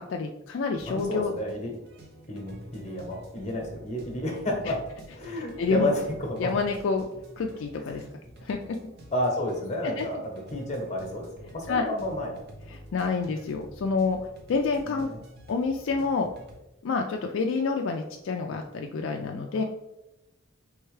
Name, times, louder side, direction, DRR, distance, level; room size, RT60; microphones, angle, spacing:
voice 1, 0.0-1.3 5.3-5.9 6.4-7.0 7.4-8.0 8.4-8.8 10.0-10.1 11.7-11.8 12.7-14.2 14.5-15.1 15.5-16.3 16.8-19.6, left 4 dB, 65° left, 3 dB, 0.3 m, -28 dB
sound 1, 0.7-16.6, right 1 dB, 50° right, 0.8 m, -48 dB
voice 2, 0.9-1.7 2.3-4.8 5.1-6.6 7.8-8.0 9.1-10.2 10.5-12.4 14.8-15.2 19.5-19.6, left 1 dB, 35° left, 1 dB, 1.0 m, -31 dB
4.5 x 3.5 x 3.2 m, 0.95 s
head